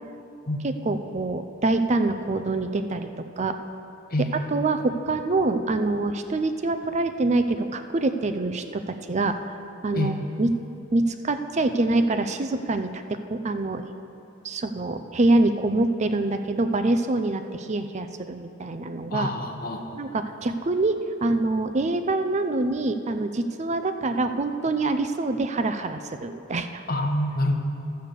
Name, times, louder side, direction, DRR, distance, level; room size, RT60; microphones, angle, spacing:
voice 1, 0.6-3.5 4.5-9.4 9.8-10.5 10.9-13.8 14.4-19.3 20.0-26.8, right 2 dB, 35° right, 8 dB, 0.5 m, -25 dB
voice 2, 4.1-4.4 9.9-10.1 19.1-20.0 26.9-27.5, left 1 dB, 50° left, 4 dB, 1.0 m, -27 dB
12.5 x 7.9 x 6.7 m, 2.7 s
head